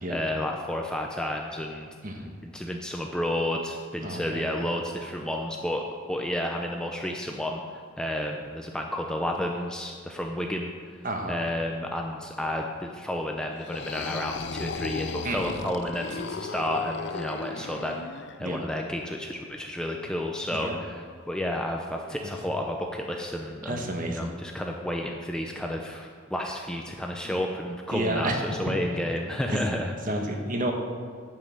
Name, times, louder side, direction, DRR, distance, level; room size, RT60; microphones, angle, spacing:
voice 1, 0.1-1.9 2.4-7.6 8.0-10.7 11.3-18.0 18.4-30.2, left 1 dB, 5° left, 1 dB, 0.6 m, -31 dB
voice 2, 2.0-2.3 4.0-4.7 11.0-11.4 15.2-15.6 17.6-17.7 18.4-18.7 20.5-20.8 22.2-22.3 23.6-24.3 27.2-27.4 27.9-28.4 29.5-29.8 30.1-30.7, right 1 dB, 40° right, 3 dB, 1.2 m, -31 dB
sound 1, 13.6-18.4, left 4 dB, 55° left, 0.5 m, -36 dB
10.5 x 5.6 x 7.6 m, 2.1 s
head